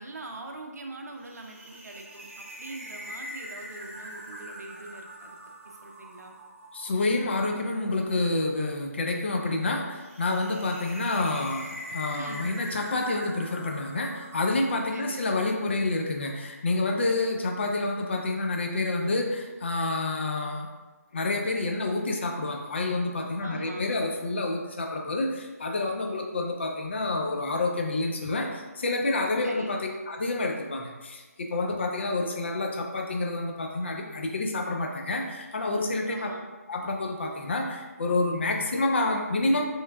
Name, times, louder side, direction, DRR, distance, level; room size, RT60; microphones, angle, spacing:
voice 1, 0.0-5.4 5.8-6.3 12.1-12.5 14.9-15.2 23.4-23.9 29.4-29.8 36.1-36.5, right 2 dB, 75° right, 2 dB, 0.5 m, -42 dB
sound 1, 1.2-15.5, equal, 50° right, 0.8 m, -44 dB
voice 2, 6.7-20.7 21.1-29.8 30.1-36.3 36.7-39.6, left 2 dB, 45° left, 2 dB, 0.4 m, -28 dB
3.2 x 3.0 x 2.3 m, 1.2 s
figure-of-eight pair, 165°, 9 cm